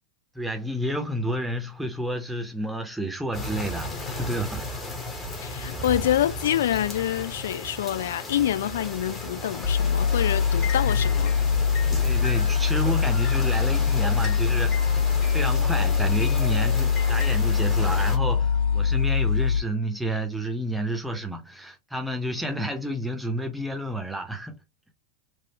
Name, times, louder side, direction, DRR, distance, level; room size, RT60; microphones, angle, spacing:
voice 1, 0.3-4.6 10.8-11.0 12.0-15.0 15.3-24.6, equal, 5° right, 0.9 m, -30 dB
sound 1, 3.3-18.2, left 1 dB, 20° left, 1.2 m, -35 dB
voice 2, 5.4-11.4, left 11 dB, 60° left, 0.3 m, -26 dB
sound 2, 9.6-19.6, left 6 dB, 40° left, 1.8 m, -23 dB
4.0 x 2.5 x 3.0 m
figure-of-eight pair, 90°, 0 cm